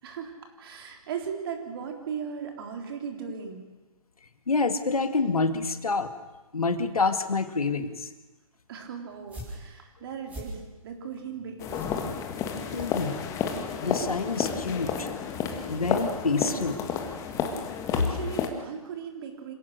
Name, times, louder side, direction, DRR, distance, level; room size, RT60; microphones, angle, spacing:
voice 1, 0.0-3.6 8.7-11.9 17.9-19.5, right 7 dB, 40° right, 4 dB, 3.8 m, -38 dB
voice 2, 4.5-6.1 6.5-8.1 12.7-13.2 13.8-15.1 15.6-16.8, left 4 dB, 80° left, 9 dB, 2.2 m, -27 dB
sound 1, 9.1-13.6, equal, 5° right, 5.6 m, -44 dB
sound 2, 11.6-18.5, left 7 dB, 15° left, 1.8 m, -31 dB
27.0 x 17.0 x 6.7 m, 1.1 s
hypercardioid pair, 145°, 18 cm